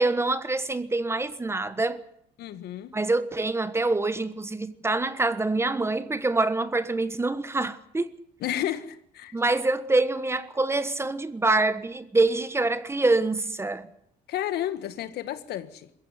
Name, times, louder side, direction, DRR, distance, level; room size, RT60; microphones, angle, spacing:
voice 1, 0.0-2.0 2.9-8.1 9.3-13.9, right 2 dB, 15° right, 1.3 m, -25 dB
voice 2, 2.4-2.9 8.4-9.4 14.3-15.9, left 11 dB, 75° left, 1.8 m, -32 dB
22.0 x 15.5 x 9.8 m
cardioid pair, 110°, 17 cm